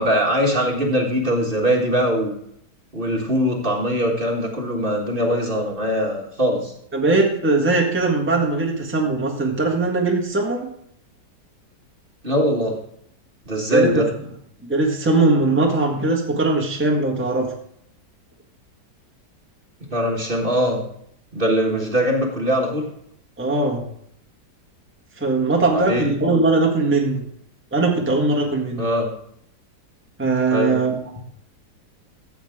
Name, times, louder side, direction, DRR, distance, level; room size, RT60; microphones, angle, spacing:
voice 1, 0.0-2.3 2.9-6.7 12.2-12.8 13.4-14.1 19.9-20.8 21.3-22.9 25.6-26.0 28.8-29.1 30.5-30.8, equal, 30° right, -1 dB, 1.6 m, -21 dB
voice 2, 6.9-10.7 13.7-14.0 14.6-17.5 23.4-23.8 25.2-27.3 27.7-28.9 30.2-30.9, right 3 dB, 5° right, -1 dB, 1.4 m, -20 dB
14.0 x 7.9 x 3.6 m, 0.70 s
omnidirectional pair, 1.9 m